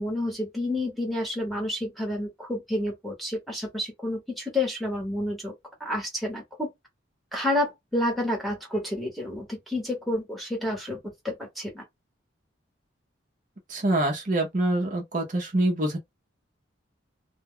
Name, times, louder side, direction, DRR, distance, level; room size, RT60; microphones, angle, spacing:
voice 1, 0.0-5.5 5.8-6.7 7.3-11.0 11.2-11.8, left 1 dB, ahead, 0.9 m, -29 dB
voice 2, 13.7-16.0, right 1 dB, 40° right, 0.6 m, -25 dB
2.1 x 2.0 x 3.5 m
head